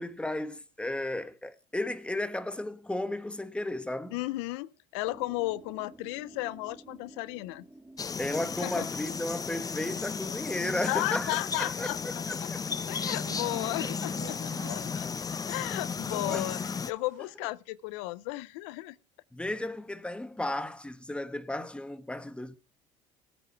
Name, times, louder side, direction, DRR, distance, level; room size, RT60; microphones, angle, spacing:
voice 1, 0.0-4.2 8.2-12.6 13.8-13.9 16.1-16.5 19.3-22.6, left 1 dB, 5° left, 1.3 m, -34 dB
voice 2, 4.1-7.6 8.6-8.9 10.9-12.5 12.9-15.1 15.5-16.6 16.9-19.0, left 19 dB, 85° left, 0.6 m, -34 dB
sound 1, 5.0-10.0, right 1 dB, 10° right, 2.0 m, -53 dB
sound 2, 8.0-16.9, left 5 dB, 25° left, 0.7 m, -34 dB
sound 3, 12.1-17.3, right 14 dB, 85° right, 0.9 m, -52 dB
18.0 x 8.0 x 4.5 m
supercardioid pair, 85°, 15 cm